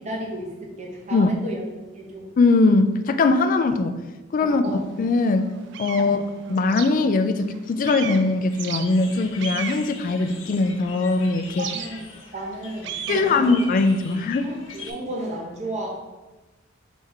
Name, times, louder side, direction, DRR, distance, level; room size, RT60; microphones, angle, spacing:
voice 1, 0.0-1.7 2.0-2.3 4.4-4.8 6.0-6.2 11.6-13.6 14.4-15.9, right 1 dB, 35° right, -1 dB, 0.8 m, -33 dB
voice 2, 2.4-4.0 4.3-5.5 5.8-6.2 6.5-11.7 13.1-14.5, left 3 dB, 45° left, 9 dB, 0.3 m, -21 dB
sound 1, 4.6-4.7 5.3-7.6 7.8-11.0 11.6-14.9, right 9 dB, 65° right, 0.3 m, -36 dB
sound 2, 8.5-15.0, left 4 dB, 90° left, 0.7 m, -42 dB
3.5 x 3.3 x 4.7 m, 1.1 s
head